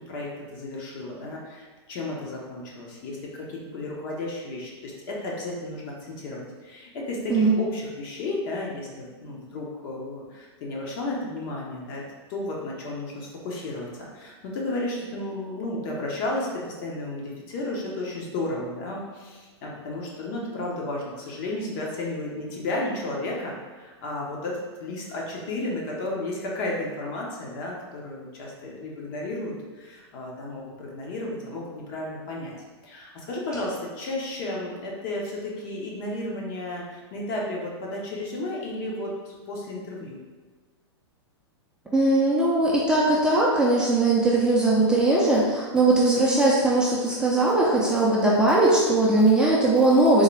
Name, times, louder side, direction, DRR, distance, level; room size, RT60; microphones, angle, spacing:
voice 1, 0.0-12.0 12.3-32.5 32.8-40.2, left 2 dB, 50° left, -3 dB, 0.9 m, -33 dB
voice 2, 41.9-50.2, right 2 dB, 5° right, -6 dB, 0.5 m, -20 dB
3.7 x 2.2 x 3.2 m, 1.4 s
hypercardioid pair, 130°, 14 cm